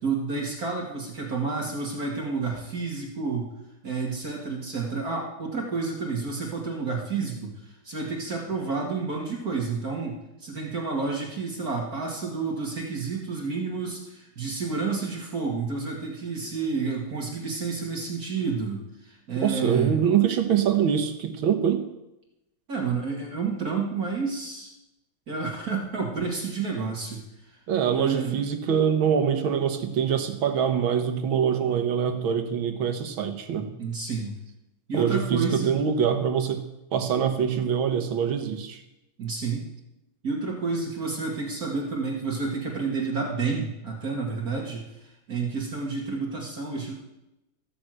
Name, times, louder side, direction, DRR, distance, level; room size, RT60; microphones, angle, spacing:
voice 1, 0.0-3.5 3.8-19.9 22.7-24.7 25.3-27.2 27.5-27.6 27.9-28.4 33.8-34.3 34.9-35.8 39.2-39.7 40.2-46.9, right 4 dB, 45° right, -1 dB, 2.4 m, -30 dB
voice 2, 19.4-21.9 27.7-33.7 34.9-38.8, right 8 dB, 70° right, 7 dB, 2.0 m, -24 dB
14.5 x 6.8 x 7.7 m, 0.92 s
omnidirectional pair, 2.3 m